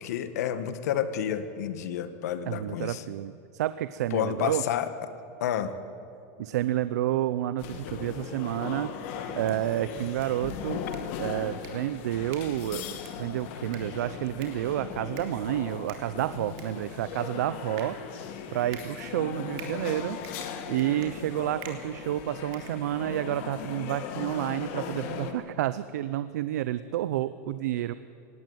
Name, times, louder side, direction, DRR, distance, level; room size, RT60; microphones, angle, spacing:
voice 1, 0.0-3.0 4.1-4.9 5.4-5.7, left 9 dB, 75° left, 11 dB, 1.5 m, -30 dB
voice 2, 2.5-4.6 6.4-10.8 11.2-12.8 13.2-20.2 20.5-27.9, right 13 dB, 80° right, 14 dB, 0.6 m, -30 dB
sound 1, 7.6-25.3, left 7 dB, 45° left, 1.8 m, -38 dB
sound 2, 9.2-23.4, right 8 dB, 40° right, 3.0 m, -51 dB
18.0 x 17.0 x 9.4 m, 2.6 s
supercardioid pair, 175°, 9 cm